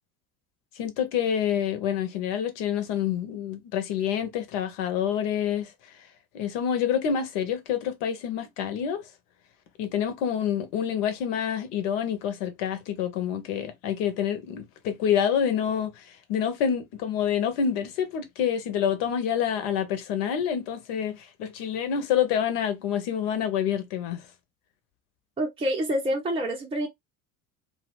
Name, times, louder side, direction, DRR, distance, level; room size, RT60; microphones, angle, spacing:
voice 1, 0.7-6.0 6.3-9.1 9.8-24.3, left 8 dB, 55° left, 0.9 m, -27 dB
voice 2, 25.4-26.9, equal, 10° right, 0.7 m, -27 dB
2.5 x 2.0 x 3.2 m
figure-of-eight pair, 60°, 44 cm